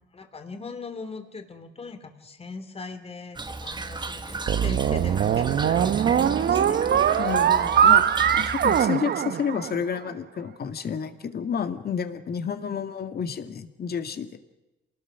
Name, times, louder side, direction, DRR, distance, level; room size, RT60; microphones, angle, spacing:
voice 1, 0.0-7.1, left 4 dB, 30° left, 7 dB, 3.2 m, -40 dB
Toilet flush / Trickle dribble, 3.4-8.9, right 3 dB, 20° right, 1.5 m, -35 dB
sound 1, 4.5-10.0, right 9 dB, 55° right, 0.9 m, -21 dB
voice 2, 7.2-8.1 8.3-14.4, left 7 dB, 50° left, 8 dB, 2.1 m, -30 dB
27.5 x 19.5 x 6.0 m, 0.99 s
cardioid pair, 90°, 20 cm